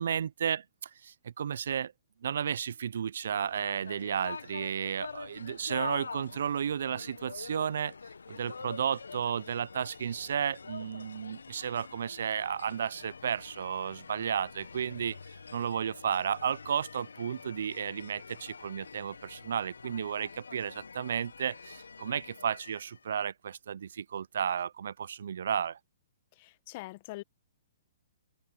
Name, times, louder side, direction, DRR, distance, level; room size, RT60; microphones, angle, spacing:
voice 1, 0.0-1.9 2.2-7.9 8.3-15.2 15.5-25.8, right 8 dB, 65° right, 0.5 m, -33 dB
sound 1, 3.2-23.1, left 5 dB, 80° left, 1.2 m, -46 dB
voice 2, 26.4-27.2, left 20 dB, 40° left, 1.2 m, -43 dB
hypercardioid pair, 125°, 0 cm